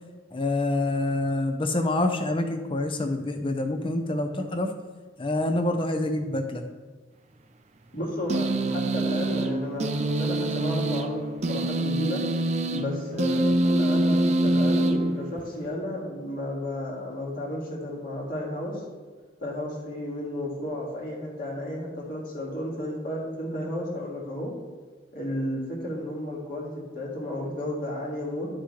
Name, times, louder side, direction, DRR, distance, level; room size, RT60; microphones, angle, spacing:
voice 1, 0.3-4.7 5.2-6.6, left 2 dB, 25° left, 6 dB, 0.7 m, -26 dB
voice 2, 7.9-11.2 11.5-12.2 12.7-18.8 19.4-24.5 25.1-28.5, left 1 dB, 45° left, -3 dB, 2.2 m, -33 dB
sound 1, 8.3-15.7, right 1 dB, 35° right, 0.5 m, -25 dB
11.0 x 5.9 x 3.3 m, 1.5 s
head